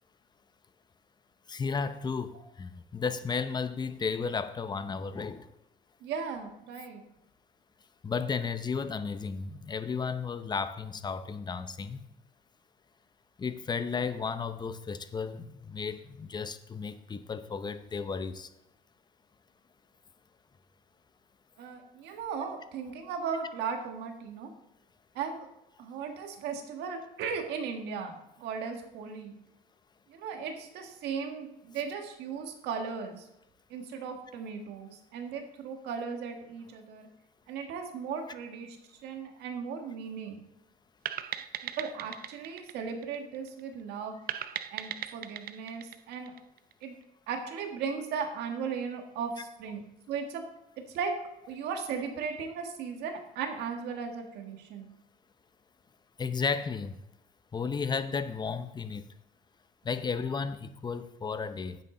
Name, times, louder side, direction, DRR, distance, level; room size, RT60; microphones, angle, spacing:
voice 1, 1.5-5.5 8.0-12.1 13.4-18.5 56.2-56.9 57.5-59.1 59.8-61.8, left 5 dB, 25° left, 11 dB, 0.7 m, -33 dB
voice 2, 6.0-7.0 21.6-24.5 25.1-25.5 25.8-29.4 30.1-33.3 33.7-37.1 37.5-38.8 39.0-40.4 41.6-44.2 44.7-46.4 46.8-47.0 47.3-50.5 50.9-51.1 51.5-54.8, right 6 dB, 85° right, 4 dB, 1.7 m, -37 dB
sound 1, 41.1-43.6 44.3-46.8, right 11 dB, 65° right, 0.6 m, -38 dB
9.9 x 8.1 x 3.8 m, 0.84 s
cardioid pair, 110°, 17 cm